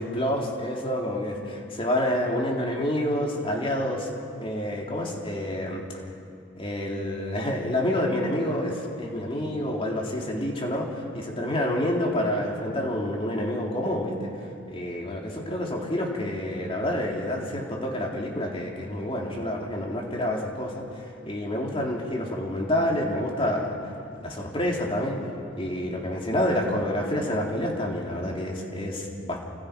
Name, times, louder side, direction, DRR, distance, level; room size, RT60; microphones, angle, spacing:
voice 1, 0.0-4.1 4.4-5.9 6.5-14.3 14.7-23.8 24.2-25.3 25.6-29.4, left 1 dB, 30° left, -1 dB, 3.7 m, -28 dB
29.0 x 28.5 x 5.3 m, 2.5 s
head